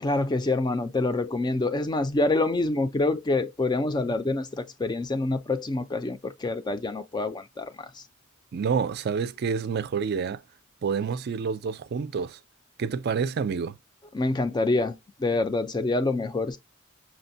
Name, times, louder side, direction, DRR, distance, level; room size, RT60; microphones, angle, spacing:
voice 1, 0.0-8.0 14.1-16.6, left 2 dB, 20° left, 0.4 m, -26 dB
voice 2, 8.5-10.4 10.8-12.4 12.8-13.8, right 6 dB, 50° right, 0.4 m, -28 dB
6.1 x 2.1 x 2.6 m
head